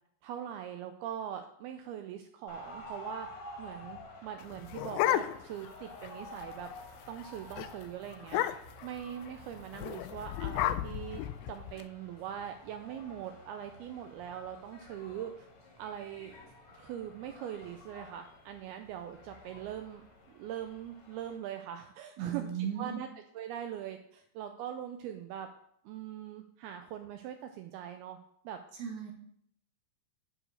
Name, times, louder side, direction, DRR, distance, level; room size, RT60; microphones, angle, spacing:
voice 1, 0.2-3.3 3.6-6.7 7.1-8.4 8.8-11.2 11.5-15.5 15.8-16.3 16.7-20.0 20.3-22.5 22.8-23.1 23.3-25.5 25.9-28.2 28.4-28.6, right 10 dB, 90° right, 6 dB, 2.2 m, -42 dB
sound 1, 2.5-21.4, left 1 dB, 45° left, 2.1 m, -51 dB
sound 2, 4.4-5.7 6.0-6.1 6.4-6.7 7.1-7.3 7.6-7.7 8.2-8.9 9.7-11.8, left 13 dB, 85° left, 2.6 m, -32 dB
voice 2, 22.2-23.0 28.7-29.1, right 8 dB, 60° right, 1 dB, 2.3 m, -36 dB
9.8 x 5.0 x 6.5 m, 0.72 s
omnidirectional pair, 5.0 m